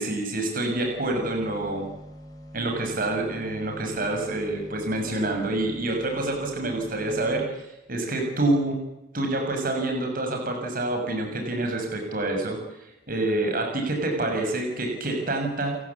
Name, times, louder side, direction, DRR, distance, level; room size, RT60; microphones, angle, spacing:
voice 1, 0.0-1.9 2.5-7.6 7.9-8.8 9.1-12.6 13.1-15.8, right 2 dB, 50° right, 3 dB, 6.8 m, -27 dB
sound 1, 0.8-7.4, equal, 20° left, 5.4 m, -44 dB
30.0 x 17.5 x 8.6 m, 0.94 s
head